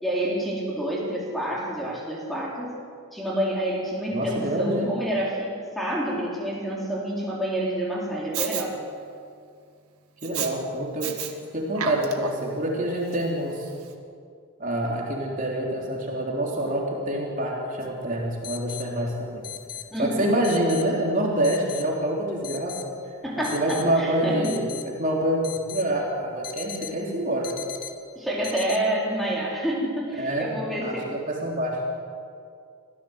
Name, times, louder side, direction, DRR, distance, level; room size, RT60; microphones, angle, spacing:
voice 1, 0.0-2.8 3.1-8.8 19.9-20.3 23.2-24.5 28.2-31.1, right 1 dB, ahead, -4 dB, 4.1 m, -28 dB
voice 2, 4.1-4.9 10.2-11.2 11.5-13.7 14.6-19.5 20.0-22.8 23.5-27.5 30.2-31.8, right 1 dB, 35° right, -2 dB, 3.6 m, -26 dB
Respiratory sounds, 8.3-8.6 10.2-10.5 11.0-11.3 11.7-12.5 13.1-13.2, right 8 dB, 90° right, 1.9 m, -31 dB
sound 1, 17.8-17.9 18.4-18.8 19.4-19.8 20.4-20.8 21.4-21.9 22.4-22.8 23.4-23.8 24.4-24.8 25.4-25.8 26.4-27.0 27.4-27.9 28.4-28.8, left 11 dB, 40° left, 1.4 m, -37 dB
25.5 x 15.5 x 8.0 m, 2.3 s
head